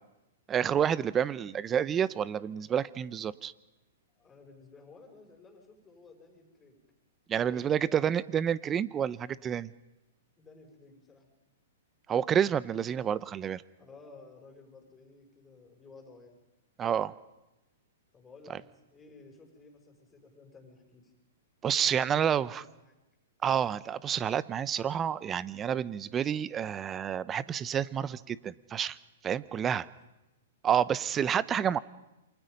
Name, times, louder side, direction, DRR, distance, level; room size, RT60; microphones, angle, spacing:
voice 1, 0.5-3.5 7.3-9.7 12.1-13.6 16.8-17.1 21.6-22.6 23.4-29.0 29.2-29.9 30.6-31.8, right 8 dB, 20° right, 19 dB, 0.8 m, -29 dB
voice 2, 4.2-6.8 7.4-7.9 10.4-11.3 13.7-16.4 18.1-21.1 21.9-22.9 29.8-29.9, left 3 dB, 15° left, 2 dB, 6.1 m, -54 dB
28.0 x 24.5 x 5.4 m, 0.96 s
hypercardioid pair, 120°, 0 cm